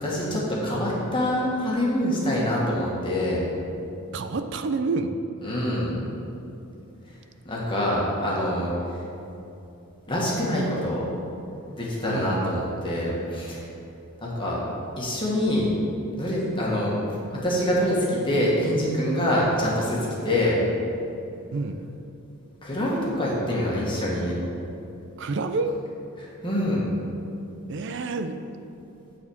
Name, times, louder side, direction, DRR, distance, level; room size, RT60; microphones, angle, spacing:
voice 1, 0.0-3.4 5.4-6.0 7.4-8.7 10.1-11.1 11.8-13.6 14.2-14.6 15.0-15.7 16.2-20.6 22.6-24.4 26.2-26.8, left 1 dB, 20° left, -5 dB, 1.6 m, -25 dB
voice 2, 4.1-5.2 12.1-12.6 21.5-21.9 25.2-25.7 27.7-28.4, right 3 dB, 55° right, 8 dB, 0.5 m, -28 dB
9.7 x 4.2 x 7.1 m, 2.8 s
head